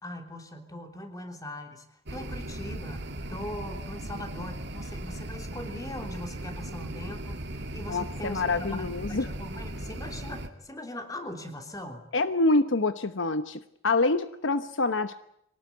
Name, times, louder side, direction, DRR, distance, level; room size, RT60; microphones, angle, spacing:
voice 1, 0.0-1.8 2.1-12.0, left 1 dB, 20° left, 5 dB, 3.3 m, -40 dB
sound 1, 2.1-10.5, right 1 dB, 60° right, 2.4 m, -38 dB
voice 2, 7.9-9.3 12.1-15.2, left 3 dB, 70° left, 11 dB, 1.0 m, -26 dB
24.0 x 18.5 x 9.6 m, 0.74 s
head